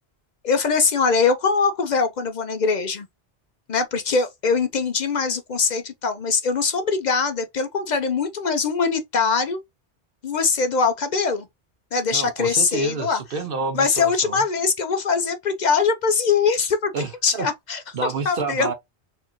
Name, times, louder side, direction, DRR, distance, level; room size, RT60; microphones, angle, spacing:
voice 1, 0.4-3.1 3.7-9.6 10.2-11.5 11.9-13.2 13.7-16.9 17.2-18.7, left 5 dB, 55° left, 0.5 m, -22 dB
voice 2, 12.1-14.4 16.9-17.5 17.9-18.7, right 4 dB, 60° right, 0.8 m, -29 dB
4.3 x 2.4 x 2.8 m
omnidirectional pair, 1.1 m